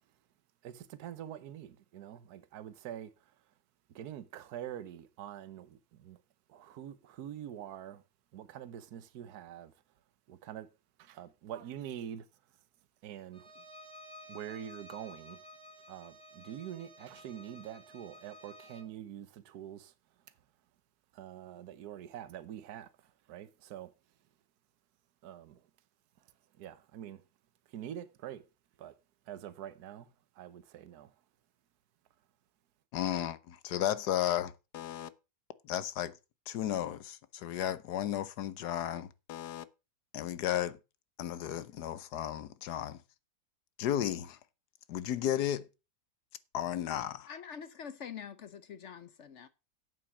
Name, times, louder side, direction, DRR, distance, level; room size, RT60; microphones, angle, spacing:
voice 1, 0.6-3.1 3.9-6.2 6.5-8.0 8.3-9.7 10.3-10.7 11.0-12.3 13.0-13.6 14.3-15.4 15.9-19.9 21.1-23.9 25.2-25.6 26.6-27.2 27.7-28.4 28.8-28.9 29.3-30.1 30.4-31.1, right 10 dB, 75° right, 1.4 m, -45 dB
Bowed string instrument, 13.3-18.9, equal, 5° left, 1.2 m, -53 dB
voice 2, 32.9-35.1 35.6-36.2 36.5-39.6 40.1-40.8 41.2-43.0 43.8-44.4 44.9-45.7 46.5-47.3, left 11 dB, 80° left, 1.3 m, -34 dB
voice 3, 47.3-49.5, left 7 dB, 55° left, 0.9 m, -45 dB
8.5 x 7.6 x 6.1 m
omnidirectional pair, 1.7 m